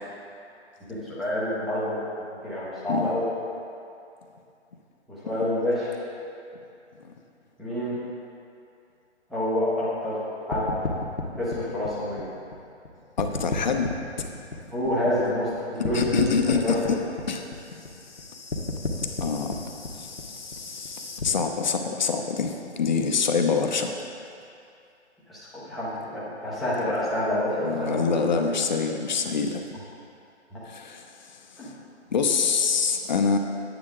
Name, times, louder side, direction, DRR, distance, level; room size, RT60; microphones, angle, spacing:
voice 1, 1.1-2.0 2.4-3.2 5.2-5.9 7.6-8.0 9.3-10.2 10.5-10.7 11.4-12.2 14.7-16.2 16.6-17.0 25.3-28.4 30.5-30.6 31.6-31.7, left 1 dB, ahead, -12 dB, 0.7 m, -27 dB
sound 1, 10.5-12.9 13.2-15.5 15.8-21.2, left 3 dB, 80° left, 1.4 m, -33 dB
voice 2, 13.2-14.3 15.9-17.0 17.3-17.5 19.2-19.7 19.9-20.1 20.6-24.0 27.6-29.6 30.7-31.0 32.1-33.4, left 5 dB, 40° left, 5 dB, 0.7 m, -25 dB
9.4 x 8.8 x 3.7 m, 2.6 s
figure-of-eight pair, 150°, 35 cm